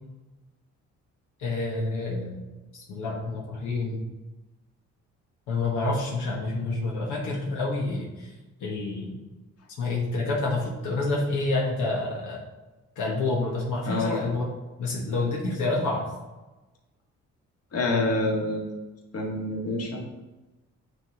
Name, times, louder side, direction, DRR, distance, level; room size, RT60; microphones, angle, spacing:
voice 1, 1.4-2.4 2.7-4.0 5.5-8.3 8.6-9.1 9.8-12.4 13.0-14.5 14.8-16.0, left 2 dB, 85° left, -2 dB, 1.4 m, -28 dB
voice 2, 17.7-18.6 19.1-20.0, left 2 dB, 50° left, -1 dB, 1.8 m, -26 dB
8.9 x 3.6 x 3.7 m, 1.1 s
cardioid pair, 90°, 30 cm